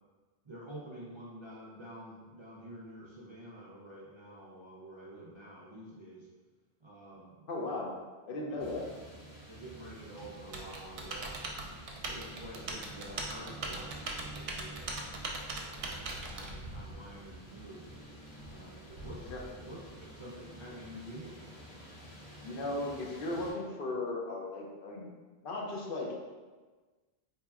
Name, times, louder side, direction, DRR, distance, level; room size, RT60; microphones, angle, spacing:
voice 1, 0.4-6.3 6.8-7.9 8.5-8.7 9.5-11.7 12.1-15.0 15.5-17.9 18.5-21.5, right 1 dB, 40° right, -7 dB, 0.4 m, -49 dB
voice 2, 7.5-7.9 8.3-8.9 19.3-19.4 22.4-25.1 25.4-26.1, left 2 dB, 65° left, -2 dB, 0.8 m, -36 dB
sound 1, 8.6-23.5, right 1 dB, 80° left, 1.2 m, -49 dB
Typing, 10.5-16.5, right 3 dB, 75° right, 0.8 m, -40 dB
4.1 x 2.8 x 2.3 m, 1.3 s
omnidirectional pair, 1.1 m